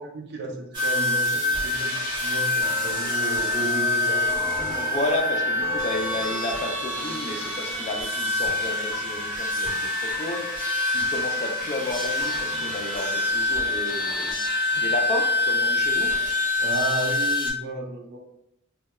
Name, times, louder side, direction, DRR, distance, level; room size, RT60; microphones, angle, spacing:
voice 1, 0.0-4.2 14.7-14.8 16.6-18.2, right 2 dB, 55° right, 0 dB, 0.5 m, -34 dB
sound 1, 0.7-17.5, left 2 dB, 20° right, 1.0 m, -26 dB
voice 2, 4.7-10.5 10.9-14.4 14.8-16.1, left 2 dB, 35° left, 3 dB, 0.3 m, -32 dB
2.2 x 2.2 x 2.8 m, 0.79 s
head